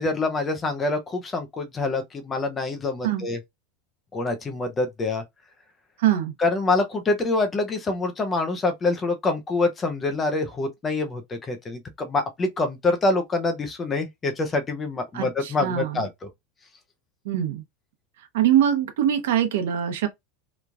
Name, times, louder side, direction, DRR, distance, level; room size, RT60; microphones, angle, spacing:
voice 1, 0.0-3.4 4.1-5.2 6.4-16.3, left 3 dB, 15° left, 0.4 m, -26 dB
voice 2, 6.0-6.3 15.1-16.0 17.3-17.6 18.3-20.1, right 10 dB, 80° right, 0.8 m, -23 dB
3.0 x 2.3 x 2.4 m
supercardioid pair, 170°, 0 cm